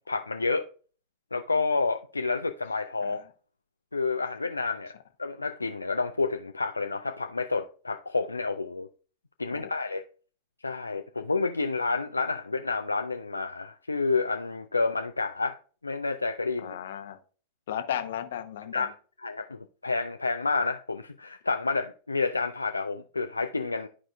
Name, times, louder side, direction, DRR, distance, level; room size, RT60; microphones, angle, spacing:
voice 1, 0.1-0.7 1.3-3.2 3.9-4.9 5.2-8.9 9.4-10.0 10.6-15.6 15.8-16.8 18.7-18.9 19.2-23.9, left 3 dB, 80° left, 0.3 m, -29 dB
voice 2, 16.6-17.2 17.7-18.9, left 10 dB, 60° left, 0.7 m, -35 dB
11.5 x 4.8 x 2.3 m
figure-of-eight pair, 90°, 0 cm